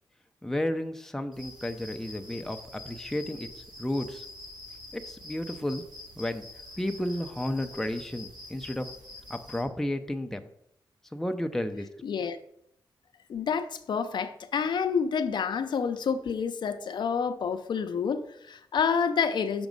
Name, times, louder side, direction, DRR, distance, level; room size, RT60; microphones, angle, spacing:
voice 1, 0.4-3.5 3.8-4.2 4.9-5.8 6.2-6.4 6.8-8.9 9.3-10.5 11.1-11.9, left 1 dB, 5° left, 0.6 m, -32 dB
sound 1, 1.3-9.6, left 2 dB, 65° right, 3.3 m, -46 dB
voice 2, 12.0-12.4 13.3-19.7, left 6 dB, 70° left, 0.6 m, -28 dB
6.0 x 5.2 x 5.2 m
wide cardioid pair, 95°, 8 cm